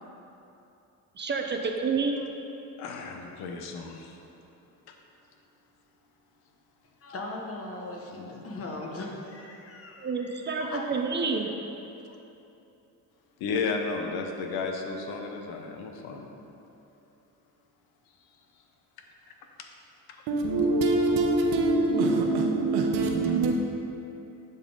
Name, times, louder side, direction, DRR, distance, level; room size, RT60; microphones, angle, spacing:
voice 1, 1.2-2.2 10.0-11.5, right 4 dB, 30° right, 3 dB, 0.6 m, -29 dB
voice 2, 2.8-4.2 4.9-5.0 8.1-8.4 12.0-12.2 13.4-16.3, left 4 dB, 75° left, 3 dB, 0.9 m, -33 dB
voice 3, 7.0-10.8, left 2 dB, 35° left, 0 dB, 1.1 m, -39 dB
voice 4, 20.3-23.5, right 2 dB, 80° right, 2 dB, 1.0 m, -24 dB
11.0 x 4.1 x 3.8 m, 2.9 s
cardioid pair, 105°, 38 cm